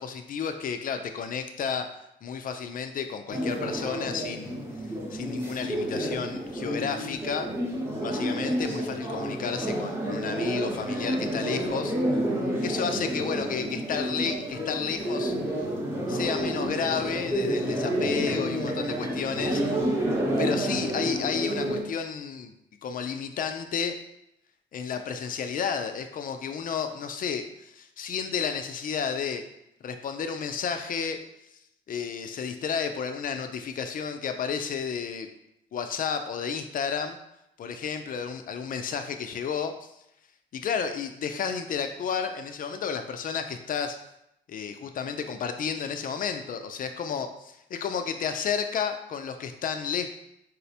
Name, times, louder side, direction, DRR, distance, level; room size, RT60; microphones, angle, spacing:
voice 1, 0.0-1.9 2.2-4.6 5.1-7.5 8.0-12.0 12.6-15.4 16.1-19.8 20.4-22.5 22.8-24.0 24.7-29.4 29.8-31.2 31.9-35.3 35.7-37.2 37.6-39.9 40.5-44.0 44.5-50.1, left 6 dB, 45° left, 7 dB, 0.4 m, -31 dB
sound 1, 3.3-21.8, right 1 dB, 10° right, 0.7 m, -30 dB
4.1 x 2.0 x 2.8 m, 0.81 s
cardioid pair, 90°, 20 cm